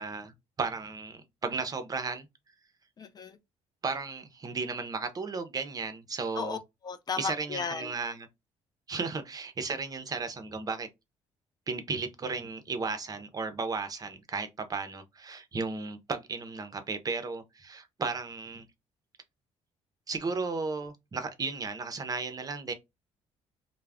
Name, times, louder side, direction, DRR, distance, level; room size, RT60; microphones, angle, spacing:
voice 1, 0.0-2.3 3.8-6.6 7.2-8.3 8.9-10.9 11.7-18.7 20.1-22.7, right 4 dB, 30° right, 0.5 m, -34 dB
voice 2, 3.0-3.4 6.4-6.6 6.8-7.9, left 5 dB, 35° left, 0.4 m, -35 dB
2.3 x 2.0 x 3.3 m
cardioid pair, 100°, 12 cm